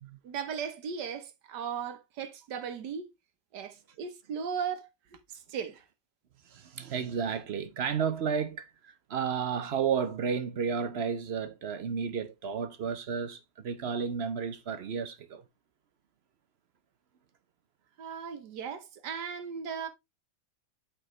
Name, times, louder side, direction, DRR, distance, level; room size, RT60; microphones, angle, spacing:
voice 1, 0.2-3.1 3.5-5.8 18.0-19.9, right 7 dB, 85° right, 1.6 m, -37 dB
voice 2, 6.5-15.4, right 6 dB, 60° right, 0.6 m, -32 dB
8.9 x 5.0 x 3.1 m
omnidirectional pair, 1.8 m